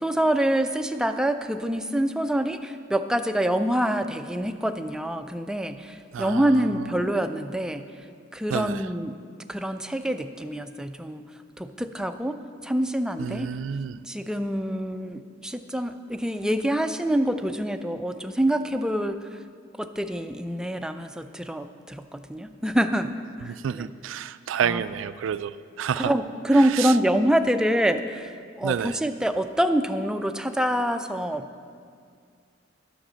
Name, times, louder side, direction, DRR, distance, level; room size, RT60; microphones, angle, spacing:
voice 1, 0.0-7.8 8.3-9.1 9.5-11.2 11.6-12.4 12.6-13.5 14.1-19.2 19.8-23.1 23.4-23.9 24.6-24.8 26.0-28.3 28.6-31.5, right 1 dB, 5° right, 8 dB, 0.3 m, -26 dB
voice 2, 8.5-8.8 13.2-14.0 23.5-25.5 25.8-26.1 26.8-26.9 28.6-29.0, right 8 dB, 85° right, 15 dB, 0.3 m, -29 dB
10.0 x 6.6 x 6.2 m, 2.2 s
head